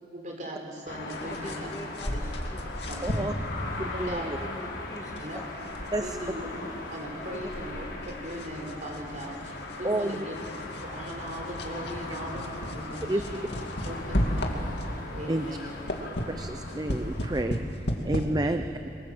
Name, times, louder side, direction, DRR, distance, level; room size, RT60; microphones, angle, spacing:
voice 1, 0.0-1.7 2.1-2.3 2.9-3.3 3.9-4.4 5.2-5.4 6.0-6.5 6.8-10.4 10.8-13.4 13.9-14.7 15.1-15.8 18.2-18.6, equal, 45° right, 1 dB, 5.2 m, -39 dB
sound 1, 0.9-17.4, left 2 dB, 85° left, 5.1 m, -39 dB
sound 2, 1.1-15.1 15.5-18.2, equal, 65° left, 2.4 m, -35 dB
voice 2, 1.2-3.0 4.4-5.5 7.4-7.5, left 1 dB, 20° left, 2 dB, 1.8 m, -44 dB
voice 3, 3.0-3.3 3.8-4.4 5.9-6.2 9.8-10.2 13.1-13.2 15.3-15.5 16.3-18.6, right 1 dB, 20° right, 8 dB, 0.6 m, -30 dB
27.5 x 23.0 x 7.9 m, 2.9 s
head